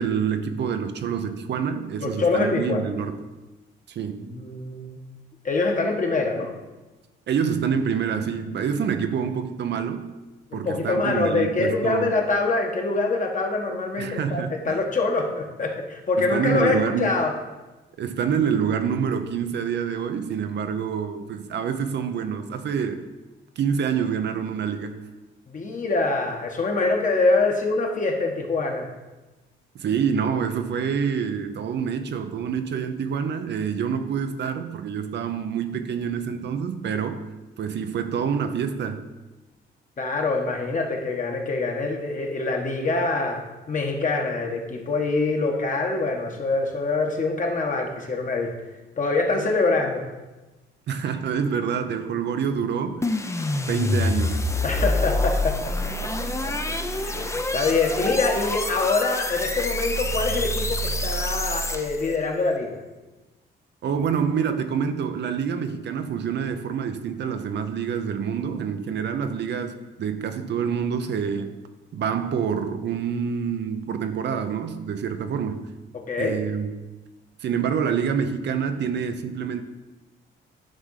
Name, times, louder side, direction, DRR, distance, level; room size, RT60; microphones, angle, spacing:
voice 1, 0.0-3.2 3.9-4.3 7.3-10.1 10.5-12.1 14.0-14.8 16.2-17.1 18.0-23.0 23.6-25.0 29.7-37.2 37.6-39.0 50.9-53.1 53.7-54.5 63.8-71.6 71.9-75.7 76.2-76.7 77.4-79.6, right 7 dB, 60° right, 0.7 m, -27 dB
voice 2, 2.0-2.9 4.2-5.0 5.4-6.5 10.5-17.3 25.5-28.9 40.0-43.4 43.7-48.5 49.0-50.0 54.6-55.7 56.0-56.1 56.4-56.7 57.0-62.8 75.9-76.4, left 3 dB, 40° left, 1.5 m, -25 dB
sound 1, 53.0-62.1, left 1 dB, 15° left, 0.7 m, -26 dB
10.0 x 3.6 x 6.4 m
cardioid pair, 90°, 20 cm